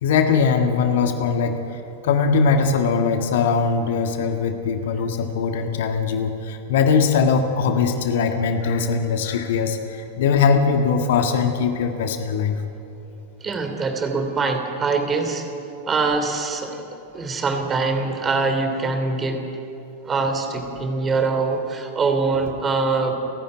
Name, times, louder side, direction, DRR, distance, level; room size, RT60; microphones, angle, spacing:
voice 1, 0.0-12.6, left 5 dB, 55° left, 6 dB, 1.6 m, -21 dB
voice 2, 13.4-15.5 15.9-16.8 17.1-19.4 20.0-23.1, right 4 dB, 20° right, 5 dB, 3.1 m, -23 dB
29.5 x 11.5 x 9.5 m, 2.9 s
figure-of-eight pair, 90°, 0 cm